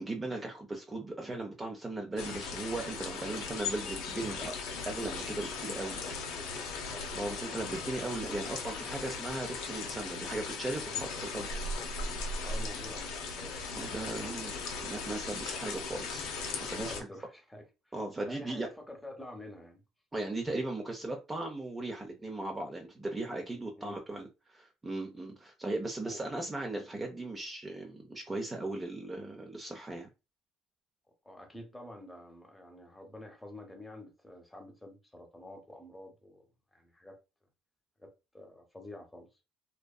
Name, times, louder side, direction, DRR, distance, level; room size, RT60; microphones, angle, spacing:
voice 1, 0.0-4.6 4.9-6.1 6.9-11.5 13.7-14.6 14.8-16.3 16.6-16.9 17.9-18.7 20.1-30.1, right 2 dB, 20° right, 0.5 m, -37 dB
sound 1, 2.2-17.0, left 4 dB, 80° left, 0.5 m, -38 dB
voice 2, 5.9-7.1 11.2-11.3 12.4-13.6 14.2-14.9 16.7-17.9 18.2-19.8 23.4-24.0 26.0-26.2 31.2-37.2 38.0-39.3, left 1 dB, 10° left, 0.8 m, -49 dB
2.6 x 2.2 x 2.2 m
supercardioid pair, 80°, 0 cm